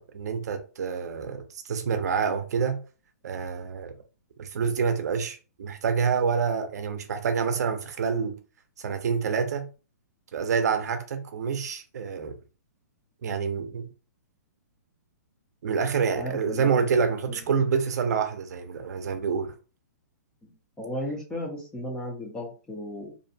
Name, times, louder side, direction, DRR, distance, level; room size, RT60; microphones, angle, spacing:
voice 1, 0.0-2.8 3.2-3.9 4.4-8.4 8.8-9.7 10.3-12.4 13.2-13.9 15.6-19.5, right 6 dB, 65° right, 0.5 m, -27 dB
voice 2, 16.2-17.0 17.3-17.4 20.4-20.5 20.8-23.1, equal, 5° left, 0.4 m, -35 dB
2.6 x 2.1 x 2.6 m
hypercardioid pair, 160°, 10 cm